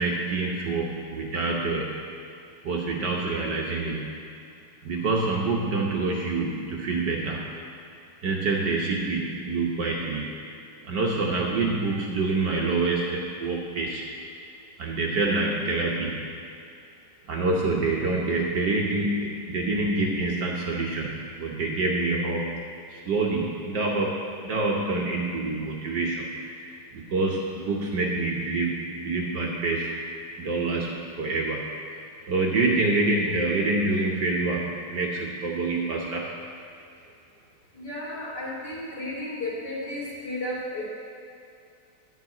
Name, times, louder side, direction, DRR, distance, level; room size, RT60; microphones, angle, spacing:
voice 1, 0.0-1.9 2.6-4.1 4.8-7.4 8.2-10.2 10.8-14.0 14.8-16.2 17.3-22.5 22.9-29.9 30.4-31.6 32.3-36.3, right 3 dB, 60° right, -2 dB, 1.4 m, -26 dB
voice 2, 37.7-40.8, left 1 dB, 50° left, -6 dB, 3.0 m, -33 dB
11.0 x 5.0 x 8.3 m, 2.5 s
omnidirectional pair, 2.4 m